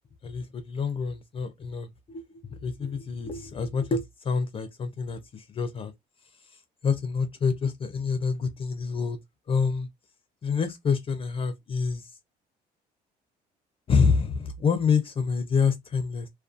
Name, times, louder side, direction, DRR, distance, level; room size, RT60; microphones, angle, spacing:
voice 1, 0.2-5.9 6.4-9.2 9.5-9.9 10.4-12.1 13.9-16.3, left 5 dB, 35° left, 0.4 m, -27 dB
2.4 x 2.2 x 2.4 m
cardioid pair, 110°, 17 cm